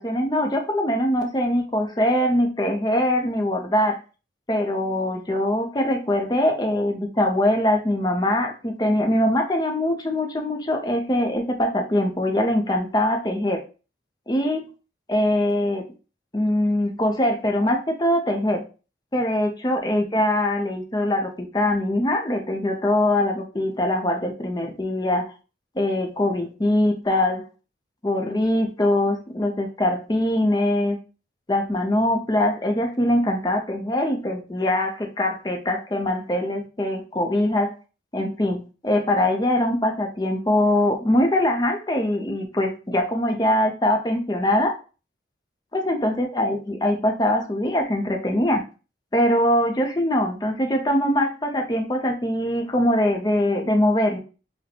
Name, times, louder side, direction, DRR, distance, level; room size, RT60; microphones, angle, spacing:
voice 1, 0.0-4.0 4.5-13.6 14.3-14.7 15.1-15.8 16.3-18.6 19.1-25.3 25.8-27.5 28.0-31.0 31.5-37.7 38.1-44.8 45.7-48.6 49.1-54.2, left 1 dB, 20° left, 4 dB, 0.6 m, -22 dB
5.0 x 2.2 x 2.8 m, 0.34 s
head